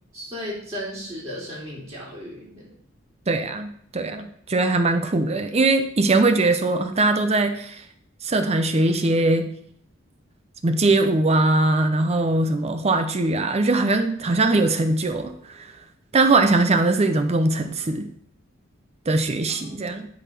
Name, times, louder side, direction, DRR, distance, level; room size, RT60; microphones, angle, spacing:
voice 1, 0.1-2.6 19.6-19.8, equal, 15° right, -8 dB, 2.9 m, -35 dB
voice 2, 3.3-7.9 8.2-9.5 10.6-15.7 16.1-18.1 19.1-20.1, right 2 dB, 30° right, 8 dB, 0.6 m, -21 dB
11.0 x 4.1 x 5.9 m, 0.65 s
head